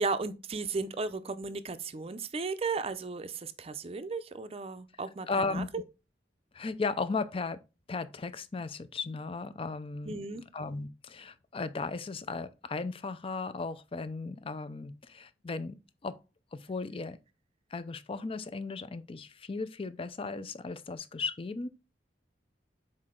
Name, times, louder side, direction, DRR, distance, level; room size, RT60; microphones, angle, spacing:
voice 1, 0.0-5.8 10.0-10.4, right 4 dB, 35° right, 0.5 m, -35 dB
voice 2, 5.3-5.7 6.5-7.6 7.9-10.2 10.5-15.8 16.0-16.2 16.5-17.2 17.7-21.7, left 4 dB, 30° left, 0.5 m, -36 dB
6.5 x 4.3 x 3.7 m
head